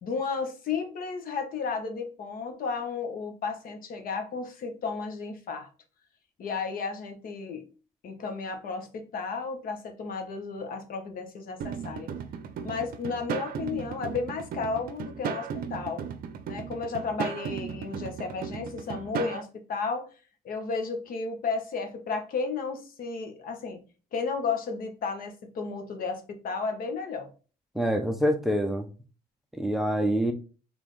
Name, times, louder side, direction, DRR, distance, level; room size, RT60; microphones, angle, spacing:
voice 1, 0.0-5.7 6.4-7.7 8.0-12.1 12.6-16.0 16.5-20.1 20.4-23.8 24.1-27.3, left 4 dB, 55° left, 6 dB, 1.1 m, -33 dB
sound 1, 11.6-19.4, right 7 dB, 60° right, 0.6 m, -36 dB
voice 2, 27.7-28.9 29.5-30.3, equal, ahead, 5 dB, 0.6 m, -26 dB
4.1 x 3.5 x 3.1 m, 0.35 s
cardioid pair, 110°, 17 cm